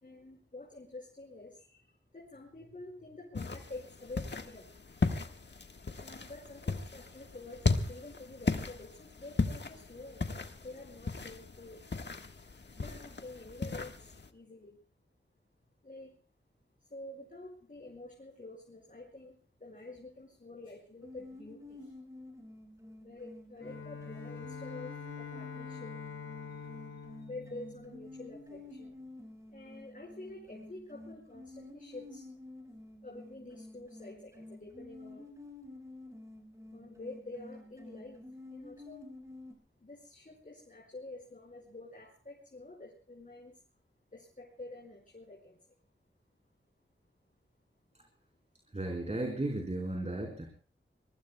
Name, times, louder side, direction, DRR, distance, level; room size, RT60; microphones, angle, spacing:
voice 1, 0.0-1.8 2.1-4.7 5.9-11.8 12.7-13.9 14.3-14.8 15.8-16.1 16.9-19.3 19.6-21.9 23.0-25.9 27.3-28.9 29.5-32.3 33.0-35.3 36.7-38.2 38.5-39.0 39.8-43.5 44.1-45.6, left 2 dB, 40° left, -2 dB, 5.3 m, -48 dB
sound 1, 3.3-14.3, left 4 dB, 55° left, 1.5 m, -36 dB
sound 2, 21.0-39.5, left 2 dB, 15° right, 4.7 m, -50 dB
Bowed string instrument, 23.6-28.7, left 5 dB, 80° left, 5.9 m, -45 dB
voice 2, 48.7-50.5, right 2 dB, 30° right, 1 dB, 4.3 m, -35 dB
25.5 x 23.0 x 2.3 m, 0.40 s
wide cardioid pair, 80°, 21 cm